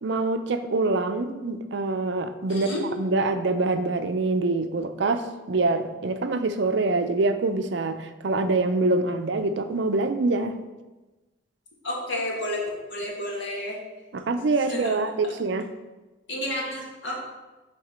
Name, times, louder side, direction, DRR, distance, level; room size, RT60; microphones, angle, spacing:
voice 1, 0.0-2.7 3.0-10.6 14.1-15.7, right 3 dB, 65° right, 9 dB, 0.5 m, -25 dB
voice 2, 2.5-2.8 11.8-12.6 12.9-13.8 14.7-15.1 16.3-17.2, left 1 dB, 70° left, -2 dB, 1.7 m, -31 dB
7.2 x 3.8 x 5.0 m, 1.1 s
head